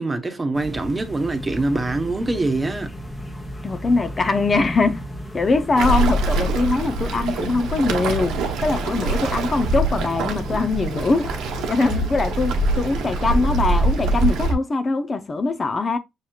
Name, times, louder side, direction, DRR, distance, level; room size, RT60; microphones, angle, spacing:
voice 1, 0.0-2.9, right 2 dB, 20° right, 1.0 m, -24 dB
sound 1, 0.5-14.5, equal, 15° left, 1.1 m, -35 dB
voice 2, 3.6-5.0 5.3-11.4 11.7-16.0, left 3 dB, 35° left, 0.6 m, -22 dB
Waves surf, 5.8-14.5, right 2 dB, 85° right, 1.1 m, -24 dB
6.3 x 3.0 x 2.3 m
cardioid pair, 90°, 0 cm